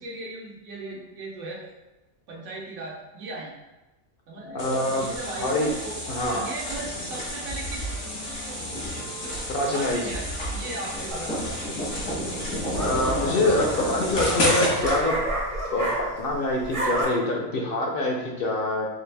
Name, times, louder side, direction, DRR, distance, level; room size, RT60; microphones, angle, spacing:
voice 1, 0.0-1.6 2.3-3.5 4.3-4.6 4.9-5.5 5.8-6.0 6.3-8.0 8.5-8.6 9.2-9.4 9.7-11.7, right 2 dB, 80° right, -3 dB, 1.2 m, -37 dB
sound 1, 4.4-10.1, right 2 dB, 60° right, 0.9 m, -44 dB
voice 2, 4.5-5.1 5.4-5.7 6.1-6.4 9.5-10.0 12.8-15.2 15.7-18.9, left 2 dB, 60° left, 1 dB, 0.6 m, -25 dB
sound 2, 4.6-15.0, equal, 85° left, 1.7 m, -30 dB
sound 3, 11.1-11.5 12.4-16.3 16.6-17.0, right 1 dB, 30° right, 0.6 m, -29 dB
4.0 x 2.5 x 3.3 m, 1.1 s
omnidirectional pair, 1.4 m